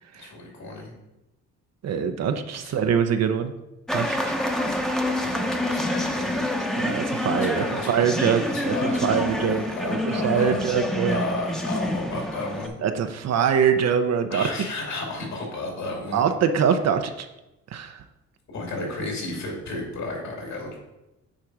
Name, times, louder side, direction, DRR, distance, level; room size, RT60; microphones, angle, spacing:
voice 1, 0.2-0.9 2.5-2.8 5.2-6.5 7.4-10.6 11.1-12.7 14.3-16.2 18.5-20.7, left 2 dB, 65° left, -1 dB, 2.7 m, -33 dB
voice 2, 1.8-3.5 3.9-4.3 4.7-4.8 6.8-11.2 12.8-14.5 16.1-17.3 17.7-17.9, right 7 dB, 60° right, 8 dB, 0.7 m, -24 dB
sound 1, 3.9-12.7, left 1 dB, ahead, 0.8 m, -27 dB
9.0 x 3.7 x 4.7 m, 0.95 s
cardioid pair, 90°, 30 cm